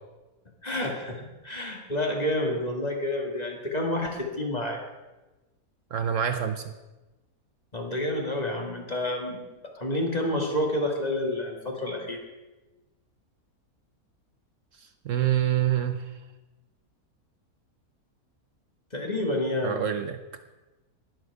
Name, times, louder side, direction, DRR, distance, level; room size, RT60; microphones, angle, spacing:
voice 1, 0.6-4.8 7.7-9.4 9.8-12.2 18.9-19.8, left 1 dB, 30° left, 1 dB, 1.9 m, -29 dB
voice 2, 5.9-6.7 15.0-16.1 19.6-20.2, right 10 dB, 65° right, 8 dB, 1.0 m, -26 dB
20.5 x 7.8 x 4.8 m, 1.1 s
omnidirectional pair, 1.5 m